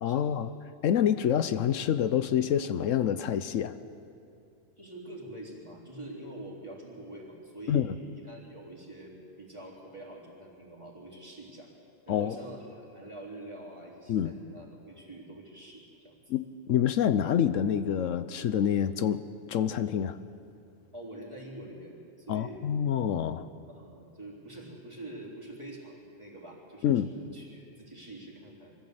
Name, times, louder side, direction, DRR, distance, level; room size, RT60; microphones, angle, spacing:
voice 1, 0.0-0.5 0.8-3.7 7.7-7.9 12.1-12.4 14.1-14.3 16.3-19.2 19.5-20.2 22.3-23.5 26.8-27.1, left 9 dB, 80° left, 12 dB, 1.0 m, -27 dB
voice 2, 4.8-11.7 12.1-16.2 20.9-22.6 23.7-28.7, right 1 dB, 20° right, -3 dB, 3.6 m, -45 dB
23.5 x 15.0 x 7.9 m, 2.5 s
omnidirectional pair, 1.3 m